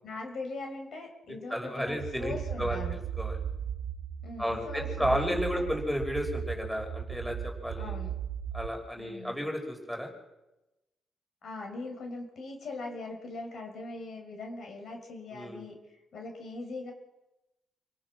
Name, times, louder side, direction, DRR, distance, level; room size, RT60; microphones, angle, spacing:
voice 1, 0.0-3.0 4.2-5.6 7.8-8.1 9.0-9.5 11.4-15.7 16.1-16.9, left 3 dB, 60° left, 3 dB, 6.0 m, -41 dB
voice 2, 1.5-3.4 4.4-8.0 8.5-10.1 15.3-15.6, equal, 5° left, 2 dB, 5.7 m, -32 dB
sound 1, 1.9-8.7, right 9 dB, 70° right, 1.1 m, -36 dB
28.0 x 18.0 x 6.4 m, 0.96 s
cardioid pair, 90°, 0 cm